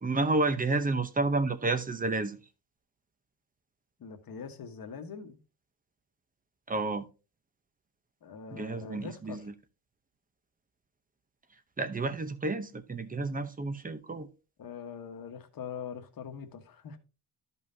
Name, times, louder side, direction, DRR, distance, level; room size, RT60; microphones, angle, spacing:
voice 1, 0.0-2.4 6.7-7.1 8.5-9.5 11.8-14.3, right 3 dB, 20° right, 0.8 m, -30 dB
voice 2, 4.0-5.4 8.2-9.5 14.6-17.0, left 6 dB, 50° left, 1.4 m, -43 dB
12.5 x 5.5 x 2.7 m
cardioid pair, 120°, 45 cm